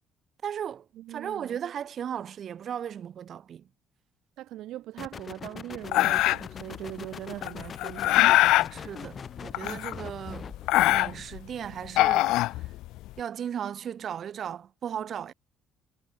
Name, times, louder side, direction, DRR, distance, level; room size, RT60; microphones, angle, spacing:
voice 1, 0.4-3.7 8.7-10.5 10.9-12.6 13.2-15.3, right 9 dB, 45° right, 1.7 m, -36 dB
voice 2, 1.0-1.6 4.4-8.6, right 14 dB, 70° right, 1.0 m, -41 dB
sound 1, 5.0-11.3, left 6 dB, 30° left, 1.5 m, -42 dB
sound 2, 5.9-6.6 7.4-8.7 9.5-10.2 10.5-11.4 11.8-13.1, left 17 dB, 85° left, 0.5 m, -22 dB
cardioid pair, 150°, 0 cm